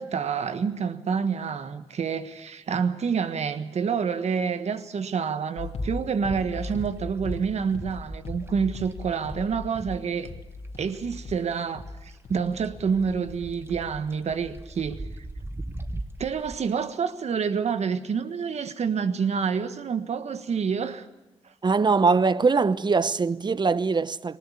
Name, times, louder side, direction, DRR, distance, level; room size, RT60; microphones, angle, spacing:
voice 1, 0.0-10.3 10.8-15.0 16.2-21.1, right 6 dB, 70° right, 1.5 m, -28 dB
sound 1, 5.6-14.0 14.3-14.8, left 2 dB, 70° left, 3.0 m, -38 dB
sound 2, 6.3-11.2 11.4-16.6, right 1 dB, 20° right, 1.4 m, -40 dB
voice 2, 21.6-24.4, right 4 dB, 40° right, 0.9 m, -22 dB
20.0 x 19.5 x 8.5 m
cardioid pair, 70°, 12 cm